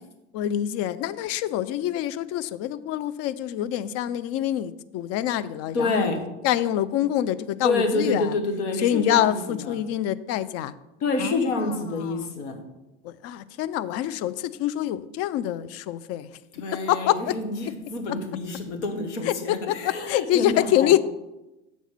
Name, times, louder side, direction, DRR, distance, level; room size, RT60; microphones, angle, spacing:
voice 1, 0.3-8.4 8.8-10.7 11.2-11.8 12.0-12.3 13.0-16.3 16.9-17.4 19.2-19.8 20.1-21.0, left 12 dB, 45° left, 16 dB, 0.4 m, -26 dB
voice 2, 5.7-6.2 7.6-9.8 11.0-12.6 16.5-21.0, left 2 dB, 75° left, 5 dB, 1.4 m, -28 dB
7.1 x 4.1 x 6.1 m, 0.98 s
hypercardioid pair, 85°, 36 cm